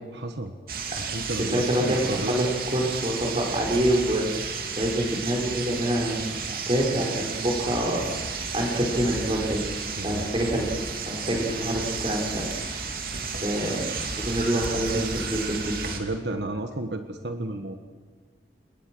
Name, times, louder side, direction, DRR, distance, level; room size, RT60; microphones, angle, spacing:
voice 1, 0.1-0.5 0.9-2.4 10.0-10.3 11.3-11.4 15.9-17.8, right 2 dB, 75° right, 7 dB, 1.5 m, -32 dB
sound 1, 0.7-16.0, right 5 dB, 55° right, 2.7 m, -33 dB
voice 2, 1.2-9.6 10.0-10.7 11.1-12.9 13.4-13.9 14.2-15.7, right 1 dB, 30° right, 0 dB, 5.3 m, -26 dB
28.5 x 21.0 x 6.3 m, 1.4 s
head